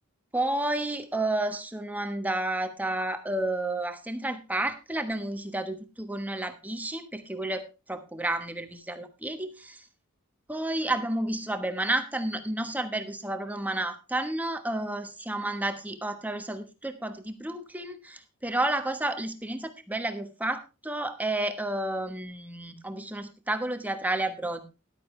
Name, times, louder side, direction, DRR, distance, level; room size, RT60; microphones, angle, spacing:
voice 1, 0.3-9.8 10.5-24.6, right 1 dB, 5° right, 8 dB, 1.1 m, -31 dB
13.5 x 11.5 x 3.2 m, 0.27 s
head